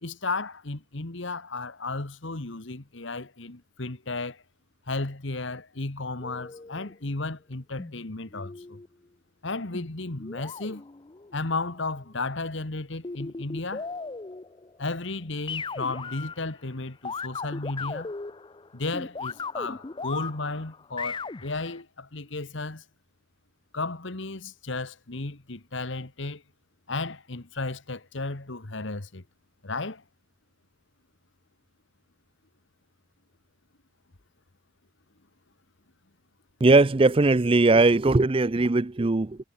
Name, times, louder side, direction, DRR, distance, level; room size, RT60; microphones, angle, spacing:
voice 1, 0.0-4.4 4.9-8.8 9.4-10.8 11.3-13.9 14.8-18.1 18.7-22.8 23.7-26.4 26.9-29.2 29.6-30.0, left 3 dB, 65° left, 1.6 m, -34 dB
sound 1, 6.2-6.9 7.8-8.9 9.7-11.8 13.0-14.9 15.5-16.7 17.0-21.8, left 4 dB, 25° left, 0.5 m, -38 dB
voice 2, 36.6-39.4, right 2 dB, 25° right, 0.5 m, -19 dB
head